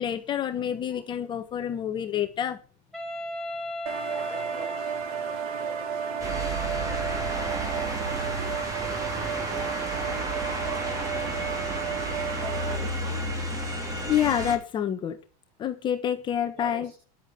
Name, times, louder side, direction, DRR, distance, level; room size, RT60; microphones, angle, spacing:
voice 1, 0.0-2.6 14.0-15.2 15.6-16.9, left 10 dB, 25° left, 5 dB, 1.3 m, -28 dB
Wind instrument woodwind instrument, 2.9-7.9, equal, ahead, 3.8 m, -36 dB
sound 1, 3.9-12.8, right 8 dB, 65° right, 2.8 m, -33 dB
voice 2, 4.2-7.8 8.1-8.6 9.5-13.5 16.6-16.9, right 1 dB, 40° right, -1 dB, 6.9 m, -46 dB
sound 2, 6.2-14.6, right 1 dB, 15° right, 3.3 m, -32 dB
14.0 x 10.5 x 4.4 m, 0.38 s
supercardioid pair, 160°, 20 cm